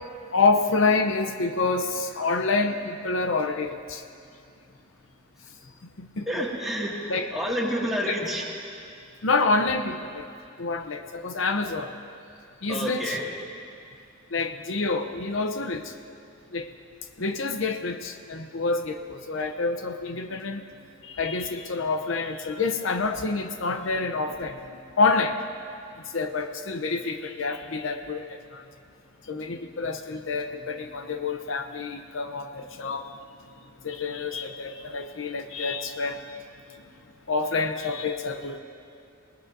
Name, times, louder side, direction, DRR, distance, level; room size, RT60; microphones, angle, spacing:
voice 1, 0.3-4.0 6.0-6.3 7.1-7.3 9.2-10.3 10.6-11.9 12.6-13.2 14.3-15.9 16.5-16.7 17.2-20.6 21.0-24.6 25.0-25.4 26.1-28.6 29.3-33.0 33.8-36.2 37.3-38.6, left 3 dB, 70° left, 6 dB, 0.7 m, -27 dB
voice 2, 6.3-8.5 12.7-13.3, equal, ahead, -4 dB, 2.1 m, -29 dB
27.0 x 19.0 x 2.7 m, 2.4 s
head